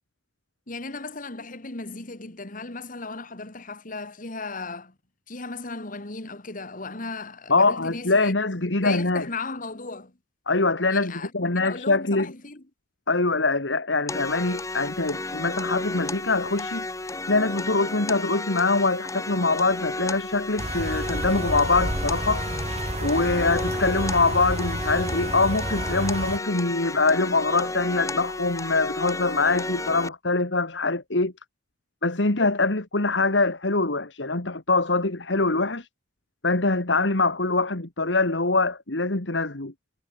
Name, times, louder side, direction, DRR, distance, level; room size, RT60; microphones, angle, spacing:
voice 1, 0.7-4.9 5.3-8.3 8.7-10.1 10.9-12.6, left 3 dB, 50° left, 2.4 m, -36 dB
voice 2, 7.5-9.3 10.5-12.3 13.1-16.9 17.3-22.5 23.0-31.3 32.0-35.9 36.4-39.7, left 3 dB, 80° left, 2.2 m, -23 dB
sound 1, 14.1-30.1, left 2 dB, 20° left, 1.0 m, -33 dB
sound 2, 20.6-26.4, right 1 dB, 35° right, 2.9 m, -31 dB
head